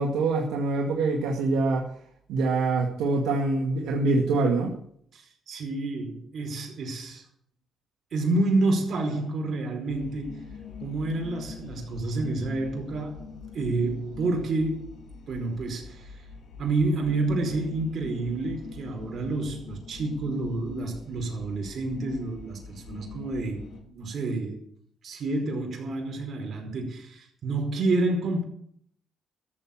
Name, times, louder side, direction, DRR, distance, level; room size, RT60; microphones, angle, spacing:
voice 1, 0.0-1.9 2.3-4.7, right 3 dB, 90° right, 2.1 m, -25 dB
voice 2, 5.1-7.2 8.1-10.4 10.8-13.2 13.5-15.0 15.3-16.1 16.6-24.6 25.0-28.4, right 2 dB, 55° right, 4.9 m, -29 dB
sound 1, 9.9-23.8, left 5 dB, 70° left, 3.6 m, -44 dB
13.5 x 7.8 x 8.8 m
cardioid pair, 90°, 0 cm